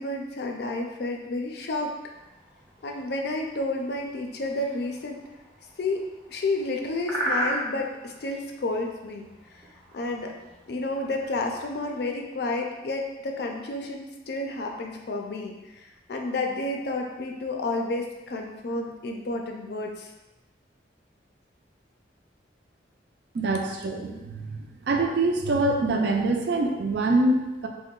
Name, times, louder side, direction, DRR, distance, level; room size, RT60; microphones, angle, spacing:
voice 1, 0.0-1.9 2.8-5.2 5.8-9.3 9.9-10.3 10.7-20.1, left 2 dB, 60° left, 2 dB, 0.4 m, -31 dB
sound 1, 2.1-12.1, right 1 dB, 5° left, 0.6 m, -37 dB
voice 2, 23.3-24.6 24.9-27.7, right 2 dB, 65° right, 3 dB, 0.4 m, -24 dB
2.8 x 2.1 x 3.7 m, 1.1 s
head